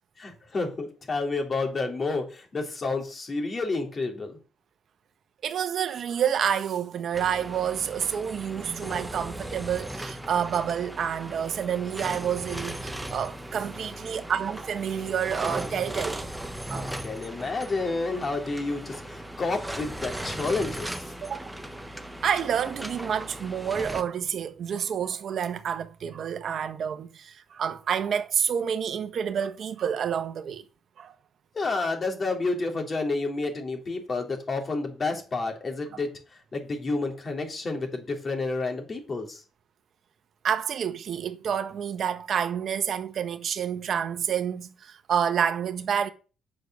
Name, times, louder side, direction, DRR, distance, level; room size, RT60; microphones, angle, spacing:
voice 1, 0.2-4.4 16.7-21.1 31.5-39.4, left 3 dB, 35° left, 3.6 m, -30 dB
voice 2, 5.4-16.3 16.7-16.9 21.2-21.4 22.0-30.6 31.0-31.1 40.4-46.1, right 8 dB, 60° right, 1.1 m, -29 dB
sound 1, 7.1-24.0, right 1 dB, 5° right, 1.1 m, -37 dB
9.2 x 6.4 x 6.4 m
cardioid pair, 90°, 0 cm